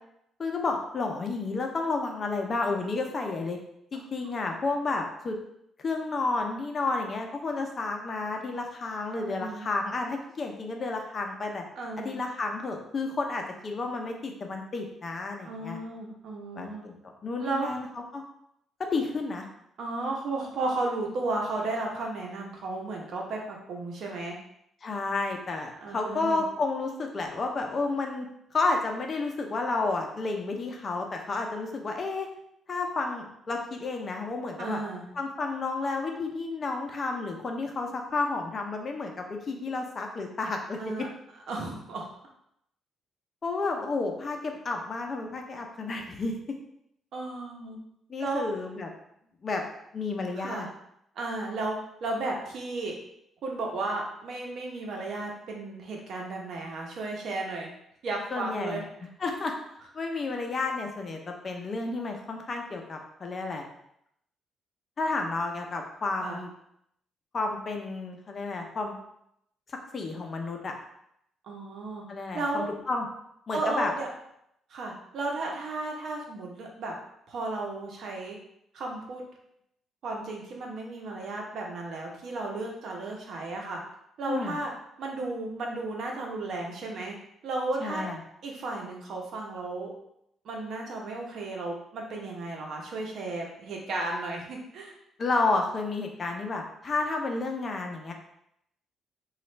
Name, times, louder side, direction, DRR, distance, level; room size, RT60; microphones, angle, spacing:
voice 1, 0.4-3.6 3.9-5.4 5.8-11.6 12.0-15.8 16.5-16.9 17.2-17.9 18.1-18.2 18.8-19.5 24.8-32.3 32.7-34.8 35.1-41.1 43.4-46.4 48.1-48.9 49.4-49.6 49.9-50.7 58.3-58.8 59.2-59.5 59.9-63.6 65.0-66.5 67.3-69.0 69.7-70.7 72.1-73.1 73.5-73.9 84.3-84.6 87.8-88.2 95.2-98.1, left 3 dB, 40° left, 3 dB, 0.7 m, -31 dB
voice 2, 9.1-9.7 11.8-12.2 15.4-16.8 17.4-17.7 19.8-24.4 25.8-26.4 34.6-35.0 40.8-41.1 41.5-42.1 47.1-47.8 48.2-48.4 50.4-50.7 51.2-52.9 53.4-57.7 58.0-58.8 66.2-66.4 71.4-72.0 72.3-72.7 73.5-74.1 74.7-76.9 77.3-78.4 78.7-79.2 80.0-83.8 84.2-84.7 85.0-87.1 87.4-88.1 88.4-89.9 90.4-94.9, right 2 dB, 65° right, 0 dB, 0.9 m, -34 dB
3.0 x 2.4 x 4.3 m, 0.75 s
cardioid pair, 90°, 0 cm